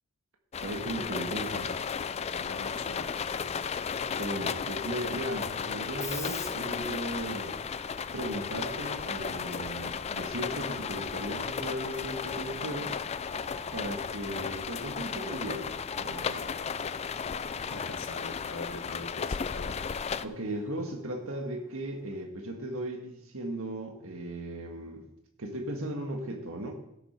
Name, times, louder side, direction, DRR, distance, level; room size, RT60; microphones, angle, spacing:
sound 1, 0.5-20.2, left 6 dB, 30° left, 0.3 m, -34 dB
voice 1, 0.6-1.7 4.2-7.6 8.1-13.0 13.7-16.6 20.2-25.0 25.4-26.7, right 1 dB, 75° right, 1 dB, 1.7 m, -36 dB
voice 2, 2.3-3.8 17.7-19.7, left 2 dB, 80° left, 7 dB, 1.3 m, -43 dB
Screech, 5.7-22.2, left 4 dB, 15° left, 0.7 m, -49 dB
16.0 x 7.1 x 4.4 m, 0.80 s
head